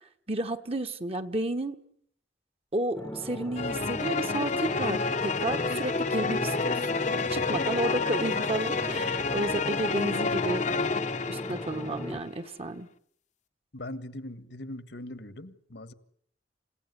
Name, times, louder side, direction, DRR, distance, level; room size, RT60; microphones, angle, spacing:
voice 1, 0.3-1.8 2.7-10.7 11.3-12.9, right 2 dB, 35° right, 8 dB, 1.3 m, -32 dB
sound 1, 2.9-12.2, left 1 dB, 15° left, 1.0 m, -38 dB
sound 2, 3.5-12.1, left 4 dB, 40° left, 0.9 m, -29 dB
voice 2, 13.7-15.9, left 1 dB, 70° left, 11 dB, 1.7 m, -41 dB
28.5 x 17.0 x 9.7 m, 0.69 s
head